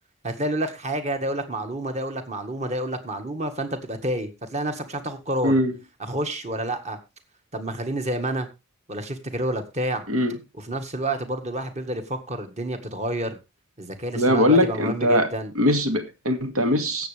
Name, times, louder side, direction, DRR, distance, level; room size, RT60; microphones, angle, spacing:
voice 1, 0.2-5.6 6.1-7.0 7.5-8.5 8.9-10.1 10.5-13.4 13.8-15.5, right 1 dB, 30° right, 1.7 m, -29 dB
voice 2, 14.1-15.3 15.6-17.1, equal, 80° right, 2.3 m, -21 dB
17.0 x 7.5 x 3.4 m
head